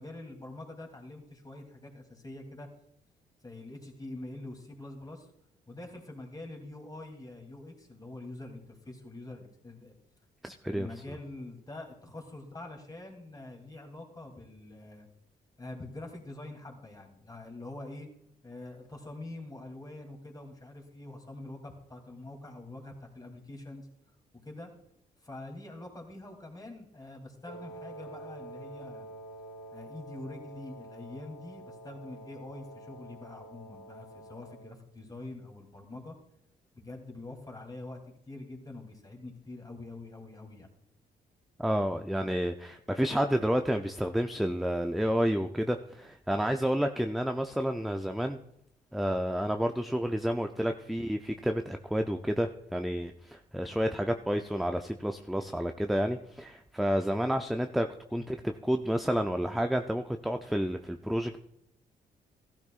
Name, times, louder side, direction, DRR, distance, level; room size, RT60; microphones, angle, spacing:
voice 1, 0.0-2.7 3.4-5.3 5.7-9.9 10.6-15.1 15.6-18.1 18.4-23.9 24.4-24.7 25.2-29.1 29.7-36.2 36.7-40.7 50.8-51.0 58.1-58.3, left 2 dB, 20° left, 1 dB, 2.9 m, -45 dB
voice 2, 10.4-10.9 41.6-48.4 48.9-61.4, equal, ahead, 6 dB, 0.5 m, -30 dB
Wind instrument woodwind instrument, 27.5-34.8, right 1 dB, 85° left, 1.1 m, -47 dB
15.0 x 12.0 x 2.5 m, 0.76 s
supercardioid pair, 65°, 17 cm